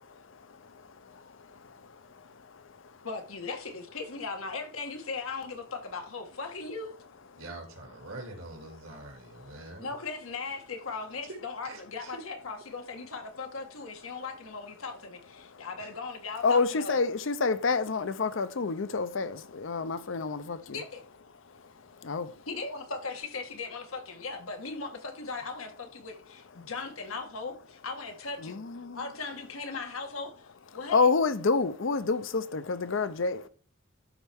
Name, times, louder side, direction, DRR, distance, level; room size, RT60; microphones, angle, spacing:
voice 1, 0.2-3.1 7.3-7.4 8.9-9.8 15.4-15.6 16.4-20.8 21.4-22.5 26.6-26.7 28.4-29.1 30.9-33.5, left 4 dB, 65° left, 0.6 m, -30 dB
voice 2, 3.0-6.9 9.8-17.0 20.7-21.0 22.5-28.6 28.9-31.1, left 4 dB, 90° left, 1.5 m, -38 dB
voice 3, 7.4-9.9 11.6-12.2 15.8-15.9, right 2 dB, 85° right, 2.3 m, -44 dB
12.0 x 4.3 x 3.5 m
head